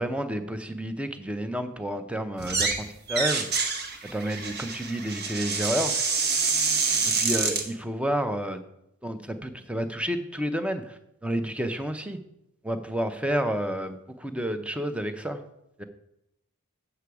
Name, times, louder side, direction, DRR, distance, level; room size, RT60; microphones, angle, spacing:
voice 1, 0.0-3.6 4.1-6.0 7.2-8.6 9.0-12.2 12.6-15.4 15.8-15.9, equal, 5° right, 9 dB, 0.6 m, -30 dB
sound 1, 2.4-2.8 3.1-7.6, right 4 dB, 45° right, 1.1 m, -27 dB
8.3 x 6.8 x 4.7 m, 0.84 s
head